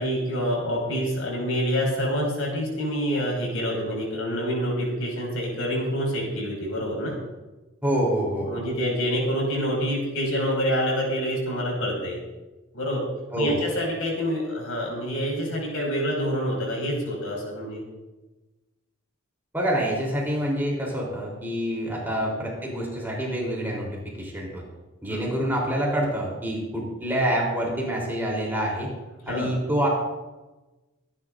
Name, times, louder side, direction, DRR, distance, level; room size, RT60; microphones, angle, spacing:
voice 1, 0.0-7.1 8.3-12.2 12.7-13.0 13.3-17.8 22.0-22.2 25.1-25.2 29.3-29.5, equal, 80° left, -1 dB, 5.6 m, -27 dB
voice 2, 7.8-8.5 13.3-13.6 19.5-24.6 25.0-28.9 29.3-29.9, right 1 dB, 10° right, -3 dB, 3.6 m, -26 dB
24.5 x 11.0 x 2.6 m, 1.1 s
head